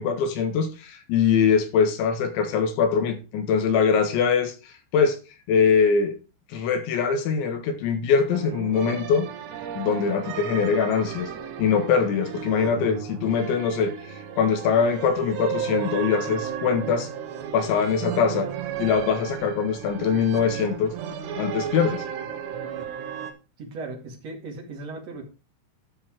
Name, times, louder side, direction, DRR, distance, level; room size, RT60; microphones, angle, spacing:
voice 1, 0.0-5.2 5.5-6.2 6.5-9.3 9.8-11.3 11.6-17.1 17.5-18.5 18.8-20.9 21.3-22.1, left 6 dB, 70° left, 3.7 m, -23 dB
sound 1, 8.3-23.3, right 8 dB, 70° right, 3.0 m, -34 dB
voice 2, 23.6-25.2, right 3 dB, 45° right, 2.3 m, -37 dB
13.0 x 5.7 x 4.5 m
omnidirectional pair, 5.8 m